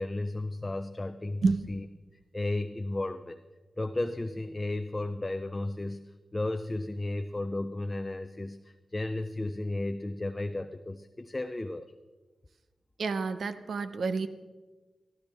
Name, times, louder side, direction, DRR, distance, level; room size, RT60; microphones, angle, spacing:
voice 1, 0.0-1.8 2.3-3.4 3.8-11.9, left 2 dB, 20° left, 8 dB, 0.5 m, -34 dB
voice 2, 13.0-14.3, right 4 dB, 75° right, 11 dB, 0.7 m, -29 dB
22.5 x 13.5 x 3.4 m, 1.3 s
wide cardioid pair, 130°, 0 cm